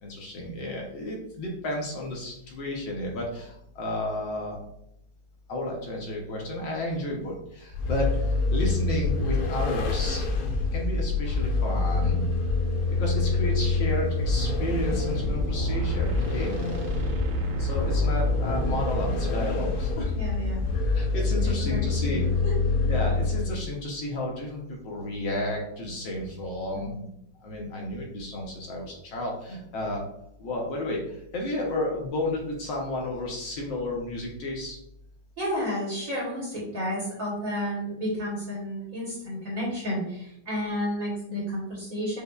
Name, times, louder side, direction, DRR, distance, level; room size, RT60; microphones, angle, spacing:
voice 1, 0.0-4.6 5.5-10.3 10.7-12.3 13.0-16.5 17.6-20.1 20.9-22.2 22.9-26.9 27.4-30.1 30.4-34.8, left 1 dB, 70° left, -1 dB, 1.3 m, -32 dB
Vehicle, 7.7-23.7, left 3 dB, 85° left, 1.5 m, -26 dB
sound 1, 14.2-19.3, right 5 dB, 85° right, 1.7 m, -33 dB
voice 2, 20.1-20.7 21.6-22.5 26.7-27.1 35.4-42.2, equal, 50° right, -6 dB, 1.0 m, -32 dB
5.3 x 2.1 x 2.2 m, 0.75 s
omnidirectional pair, 2.4 m